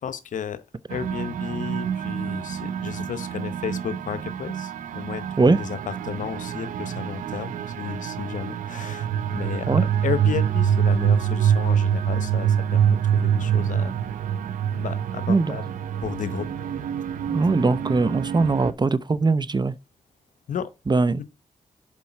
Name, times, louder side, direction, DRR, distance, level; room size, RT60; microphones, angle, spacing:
voice 1, 0.0-0.6 0.9-13.9 14.7-15.6 16.0-16.5 20.5-20.7 21.2-21.3, left 8 dB, 75° left, 0.8 m, -33 dB
sound 1, 0.9-18.7, right 8 dB, 85° right, 0.6 m, -26 dB
voice 2, 15.3-15.6 17.3-19.7 20.9-21.2, right 3 dB, 35° right, 0.7 m, -21 dB
7.1 x 4.6 x 5.9 m
supercardioid pair, 45°, 13 cm